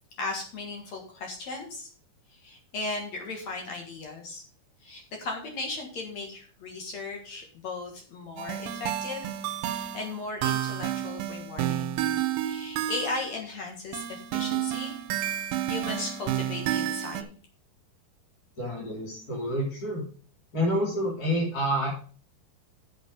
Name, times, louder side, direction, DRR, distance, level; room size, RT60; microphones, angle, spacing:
voice 1, 0.2-1.9 2.3-4.4 4.8-9.3 9.7-12.0 12.4-15.0 15.7-17.3, left 3 dB, 55° left, 2 dB, 2.4 m, -36 dB
sound 1, 8.4-13.4 13.9-17.2, right 11 dB, 75° right, 2.4 m, -30 dB
voice 2, 18.6-20.0 20.5-21.9, equal, 25° left, -6 dB, 3.5 m, -28 dB
8.6 x 7.5 x 5.3 m, 0.42 s
omnidirectional pair, 4.6 m